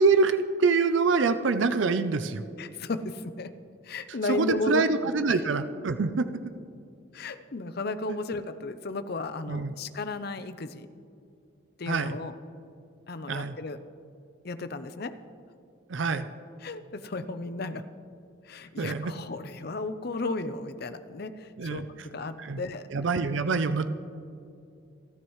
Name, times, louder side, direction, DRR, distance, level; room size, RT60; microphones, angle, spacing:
voice 1, 0.0-2.4 4.3-6.3 9.5-9.7 11.9-12.2 13.3-13.6 15.9-16.2 18.8-19.1 21.6-21.8 22.4-22.6 22.9-23.9, right 4 dB, 70° right, 10 dB, 0.5 m, -25 dB
voice 2, 2.6-3.5 3.8-4.9 5.3-5.4 7.1-10.9 11.8-12.3 13.1-13.8 14.4-15.1 16.6-17.8 18.4-22.9, left 3 dB, 55° left, 11 dB, 0.6 m, -34 dB
28.0 x 9.5 x 3.2 m, 2.5 s
head